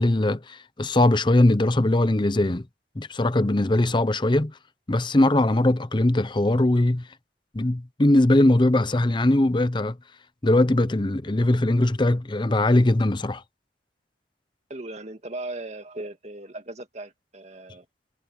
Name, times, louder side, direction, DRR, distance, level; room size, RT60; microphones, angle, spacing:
voice 1, 0.0-2.6 3.0-4.5 4.9-7.1 7.5-10.0 10.4-13.4, left 1 dB, 25° left, 0.7 m, -21 dB
voice 2, 14.7-17.9, right 2 dB, 40° right, 2.0 m, -37 dB
head